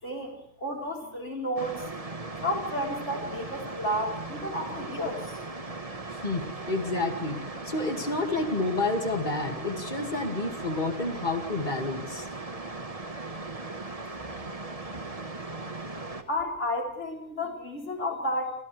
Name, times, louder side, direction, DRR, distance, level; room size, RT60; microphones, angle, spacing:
voice 1, 0.0-1.9 2.4-5.4 16.3-18.5, left 1 dB, 50° left, 0 dB, 4.8 m, -32 dB
sound 1, 1.6-16.2, right 2 dB, 25° right, 1.6 m, -38 dB
voice 2, 6.2-12.3, left 2 dB, 30° left, 3 dB, 2.6 m, -30 dB
30.0 x 25.0 x 3.5 m, 0.69 s
omnidirectional pair, 1.5 m